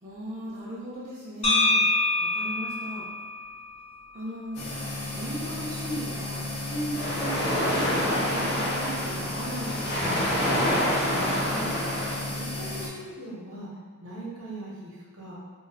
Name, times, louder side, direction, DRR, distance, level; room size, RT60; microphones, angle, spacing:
voice 1, 0.0-1.9 2.2-3.1 4.1-4.8 5.1-10.2, right 1 dB, 30° right, -9 dB, 0.4 m, -37 dB
sound 1, 1.4-5.5, left 2 dB, 25° left, 0.4 m, -27 dB
sound 2, 4.5-12.9, left 2 dB, 85° left, 0.6 m, -34 dB
sound 3, 6.9-12.2, equal, 45° left, 0.9 m, -27 dB
voice 2, 11.3-11.7 12.3-13.7 14.0-15.4, right 2 dB, 60° right, -5 dB, 0.7 m, -40 dB
2.4 x 2.2 x 3.4 m, 1.5 s
head